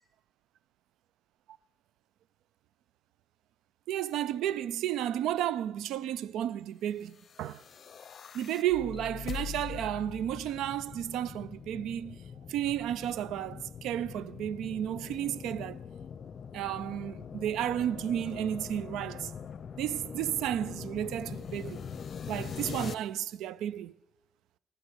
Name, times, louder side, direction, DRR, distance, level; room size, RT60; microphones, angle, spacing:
voice 1, 3.9-7.6 8.3-12.2 12.5-15.8 16.5-19.3 19.8-21.8 22.3-23.9, right 11 dB, 85° right, 0.4 m, -32 dB
sound 1, 7.2-22.9, left 7 dB, 50° left, 0.6 m, -42 dB
16.0 x 5.9 x 9.7 m
cardioid pair, 90°, 0 cm